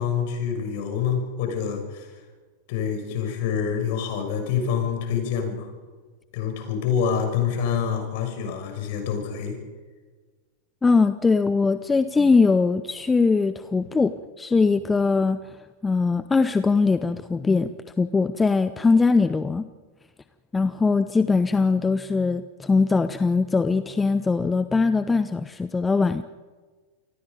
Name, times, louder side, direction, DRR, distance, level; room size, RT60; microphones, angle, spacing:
voice 1, 0.0-2.1 2.7-5.7 6.3-9.6, left 7 dB, 50° left, 4 dB, 6.5 m, -26 dB
voice 2, 10.8-15.4 15.8-17.7 18.0-19.7 20.5-26.2, left 4 dB, 10° left, 12 dB, 0.7 m, -21 dB
28.0 x 20.0 x 5.3 m, 1.4 s
figure-of-eight pair, 90°, 0 cm